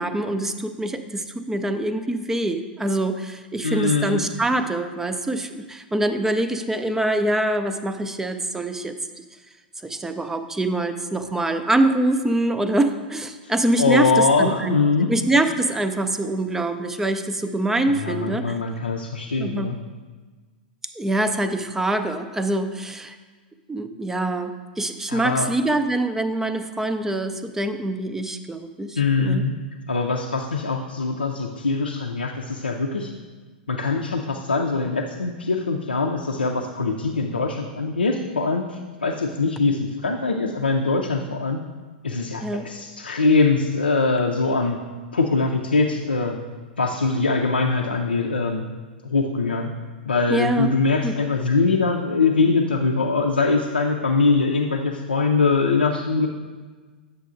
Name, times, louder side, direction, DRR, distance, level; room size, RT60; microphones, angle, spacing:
voice 1, 0.0-9.0 9.8-14.8 15.1-18.6 19.4-19.8 21.0-23.2 23.7-29.4 42.4-42.7 50.3-50.7 51.0-51.3, right 1 dB, 10° right, 9 dB, 0.4 m, -24 dB
voice 2, 3.6-4.2 13.8-15.1 18.0-19.8 25.1-25.5 29.0-29.5 29.9-33.1 33.7-41.6 42.0-44.8 45.1-46.4 46.8-48.6 49.0-49.7 50.1-56.3, left 3 dB, 85° left, 1 dB, 0.5 m, -22 dB
8.2 x 6.4 x 2.5 m, 1.4 s
figure-of-eight pair, 100°, 5 cm